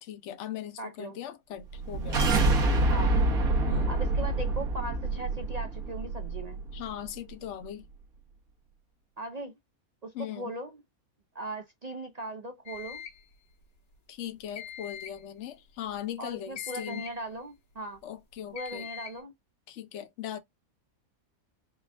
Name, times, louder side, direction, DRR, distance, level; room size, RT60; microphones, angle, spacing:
voice 1, 0.0-2.3 3.7-4.0 6.7-7.9 10.1-10.5 14.1-17.0 18.0-18.9 19.7-20.4, left 11 dB, 60° left, 1.0 m, -39 dB
voice 2, 0.8-1.2 2.9-3.1 3.9-6.6 9.2-9.5 10.0-10.8 11.3-13.0 16.2-18.0 18.5-19.3, right 1 dB, 60° right, 0.4 m, -39 dB
sound 1, 1.7-6.8, right 2 dB, 90° right, 1.7 m, -26 dB
sound 2, 12.7-13.2 14.6-15.2 16.6-17.2 18.6-19.2, left 9 dB, 75° left, 2.4 m, -42 dB
5.3 x 2.4 x 3.4 m
omnidirectional pair, 1.5 m